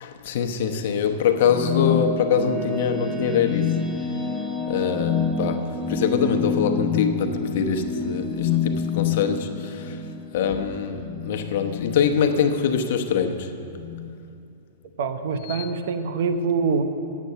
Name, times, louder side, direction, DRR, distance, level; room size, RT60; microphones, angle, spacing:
voice 1, 0.0-3.9 4.7-10.0 10.3-13.5, left 7 dB, 60° left, 6 dB, 0.9 m, -24 dB
sound 1, 1.2-12.1, left 2 dB, 10° right, 1.0 m, -31 dB
sound 2, 1.4-2.7 3.3-4.1 4.9-5.4 6.8-7.2 8.3-9.3 10.8-12.7 13.8-14.2 15.4-15.7, left 11 dB, 40° left, 0.3 m, -28 dB
voice 2, 15.0-16.8, right 5 dB, 65° right, 8 dB, 0.9 m, -24 dB
9.6 x 8.5 x 6.7 m, 2.6 s
hypercardioid pair, 140°, 0 cm